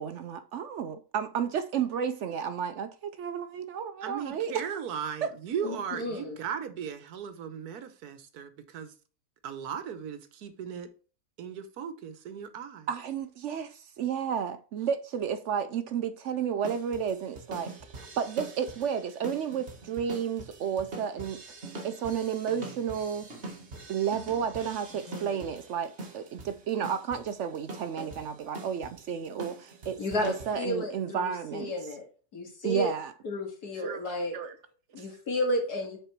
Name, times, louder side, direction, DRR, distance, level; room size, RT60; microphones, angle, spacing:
voice 1, 0.0-4.6 5.2-5.3 12.9-21.4 21.8-23.3 23.9-31.7 32.6-33.1 33.8-34.0 34.3-34.5 34.9-35.1, right 8 dB, 65° right, 0.7 m, -32 dB
voice 2, 4.0-8.9 9.4-10.9 11.4-12.9, right 7 dB, 85° right, 1.4 m, -37 dB
voice 3, 5.6-6.4 25.1-25.4 30.0-32.0 32.3-32.9 33.2-34.4 34.9-36.0, left 1 dB, 90° left, 2.5 m, -32 dB
sound 1, 16.6-30.6, right 2 dB, 45° right, 1.8 m, -44 dB
6.8 x 4.5 x 4.5 m
omnidirectional pair, 1.6 m